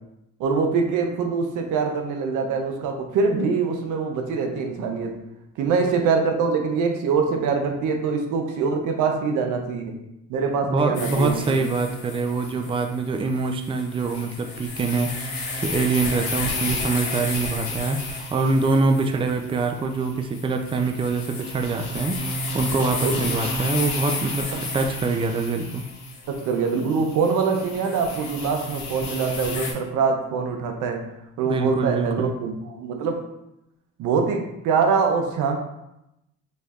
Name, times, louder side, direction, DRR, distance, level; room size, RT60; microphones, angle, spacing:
voice 1, 0.4-5.2 5.6-10.0 10.3-11.6 23.0-23.2 24.5-24.6 26.3-31.1 31.4-33.2 34.0-35.6, right 5 dB, 90° right, 4 dB, 0.7 m, -24 dB
voice 2, 10.7-25.9 31.5-32.3, right 3 dB, 20° right, 5 dB, 0.4 m, -24 dB
sound 1, 10.9-29.7, left 2 dB, 65° left, 1.0 m, -32 dB
4.3 x 3.2 x 2.4 m, 0.86 s
cardioid pair, 90°, 30 cm